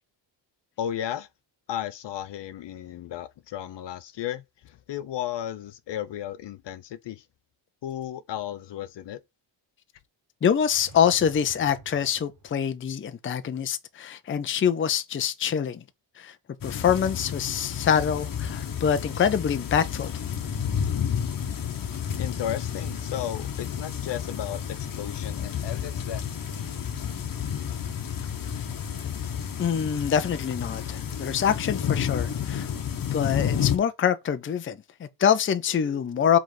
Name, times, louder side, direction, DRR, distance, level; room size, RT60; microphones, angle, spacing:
voice 1, 0.8-1.3 1.7-7.2 7.8-9.2 22.2-26.3, left 11 dB, 60° left, 0.7 m, -34 dB
voice 2, 10.4-15.8 16.2-16.4 16.6-20.1 29.6-32.7 33.1-36.4, left 8 dB, 25° left, 0.6 m, -25 dB
sound 1, 10.6-12.8, right 1 dB, 40° right, 1.8 m, -50 dB
sound 2, 16.6-33.8, left 8 dB, 45° left, 1.1 m, -31 dB
5.1 x 4.0 x 5.8 m
cardioid pair, 150°, 48 cm